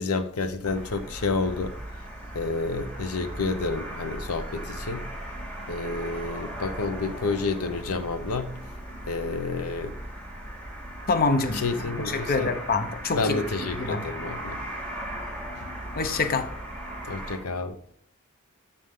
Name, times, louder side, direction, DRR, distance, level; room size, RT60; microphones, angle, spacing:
voice 1, 0.0-1.8 2.3-5.1 5.7-8.6 9.1-10.0 11.5-12.6 13.1-14.6 15.6-15.7 17.1-17.8, left 3 dB, 80° left, 0.8 m, -29 dB
sound 1, 0.6-17.4, right 1 dB, 5° left, 2.9 m, -38 dB
voice 2, 11.1-11.6 12.1-13.4 13.8-14.0 16.0-16.5, left 4 dB, 40° left, 0.8 m, -25 dB
13.0 x 7.1 x 3.7 m
head